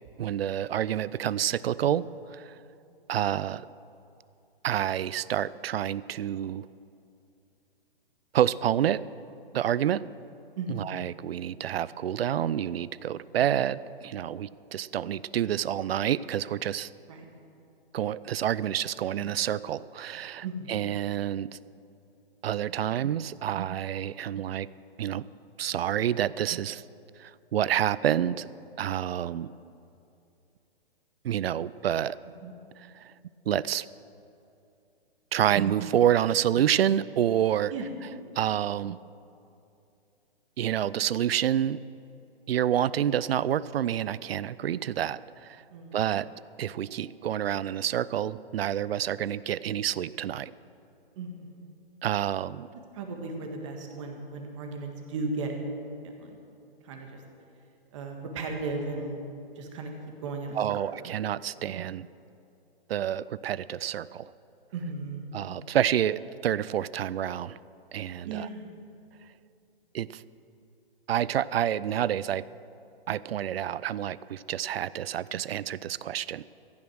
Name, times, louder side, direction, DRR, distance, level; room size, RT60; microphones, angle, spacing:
voice 1, 0.2-2.6 3.1-3.7 4.6-6.7 8.3-9.0 9.5-10.0 10.7-16.9 17.9-21.6 22.4-24.7 25.0-25.2 25.6-26.8 27.2-28.5 28.8-29.5 31.2-32.2 32.9-33.1 33.5-33.9 35.3-37.7 38.4-39.0 40.6-41.8 42.5-45.6 45.9-46.3 46.6-50.5 52.0-52.7 60.6-62.1 62.9-64.3 65.3-67.6 67.9-68.5 69.9-70.2 71.1-72.4 73.1-76.4, right 10 dB, 75° right, 19 dB, 0.5 m, -28 dB
voice 2, 51.1-51.6 52.9-55.5 56.0-56.4 56.8-57.2 57.9-59.2 59.5-59.9 60.2-61.1 64.7-65.3 68.2-68.7, right 3 dB, 30° right, 3 dB, 1.6 m, -36 dB
14.5 x 9.6 x 6.3 m, 2.7 s
hypercardioid pair, 165°, 30 cm